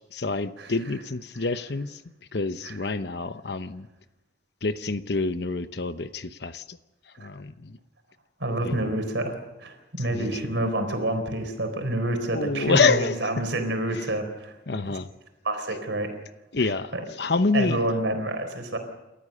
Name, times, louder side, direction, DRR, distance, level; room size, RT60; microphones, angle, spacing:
voice 1, 0.0-2.0 2.3-3.9 4.6-6.8 7.2-7.8 8.6-8.9 10.1-10.5 12.3-13.4 13.9-14.0 14.7-15.1 16.5-17.8, left 3 dB, 60° left, 12 dB, 0.9 m, -27 dB
voice 2, 8.4-14.5 14.8-15.0 15.4-16.1 16.9-17.0 17.5-18.8, right 1 dB, 75° right, 6 dB, 4.0 m, -28 dB
29.0 x 13.5 x 6.6 m, 0.99 s
head